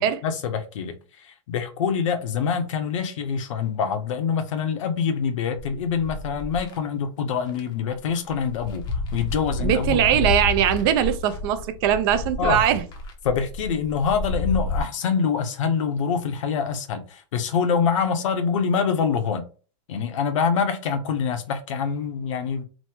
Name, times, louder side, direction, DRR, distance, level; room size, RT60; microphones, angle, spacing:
voice 1, 0.0-10.3 12.4-12.6 13.2-19.4 19.9-22.6, left 6 dB, 80° left, 0.7 m, -25 dB
sound 1, 5.6-6.8 7.5-7.6 7.9-14.8, left 3 dB, 25° left, 0.6 m, -30 dB
voice 2, 9.6-12.8, right 10 dB, 50° right, 0.4 m, -21 dB
3.0 x 2.1 x 3.4 m
supercardioid pair, 150°, 16 cm